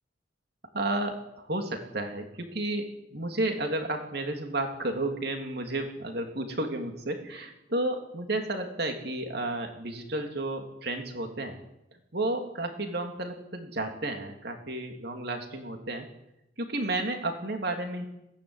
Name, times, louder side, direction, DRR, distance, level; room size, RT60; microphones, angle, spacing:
voice 1, 0.7-1.2 1.5-11.6 12.1-16.1 16.6-18.0, right 2 dB, 55° right, 4 dB, 3.2 m, -32 dB
21.5 x 17.5 x 9.9 m, 0.88 s
head